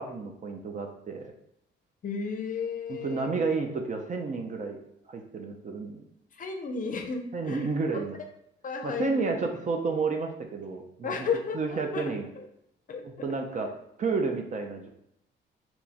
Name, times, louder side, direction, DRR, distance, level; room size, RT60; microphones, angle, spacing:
voice 1, 0.0-1.3 2.9-4.8 5.1-6.0 7.3-8.2 8.8-11.3 11.5-12.3 13.2-13.7 14.0-14.9, right 4 dB, 40° right, 4 dB, 0.5 m, -31 dB
voice 2, 2.0-3.4 6.3-8.1 8.6-9.5 11.0-12.5 12.9-13.3, left 5 dB, 40° left, 4 dB, 0.6 m, -34 dB
2.9 x 2.2 x 4.1 m, 0.77 s
cardioid pair, 90°, 20 cm